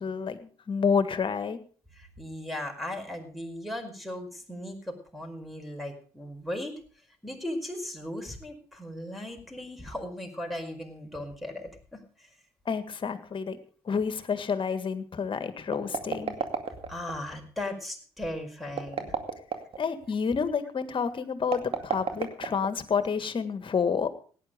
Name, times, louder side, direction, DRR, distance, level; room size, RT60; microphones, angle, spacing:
voice 1, 0.0-1.6 12.7-13.6 13.9-16.3 19.8-24.1, left 6 dB, 45° left, 11 dB, 1.8 m, -29 dB
voice 2, 2.0-6.8 7.2-12.3 16.9-19.1, left 1 dB, ahead, 5 dB, 5.1 m, -37 dB
sound 1, 15.6-17.1 18.7-19.8 21.4-23.0, right 6 dB, 50° right, 2.3 m, -32 dB
17.0 x 10.0 x 5.1 m, 0.43 s
hypercardioid pair, 45°, 12 cm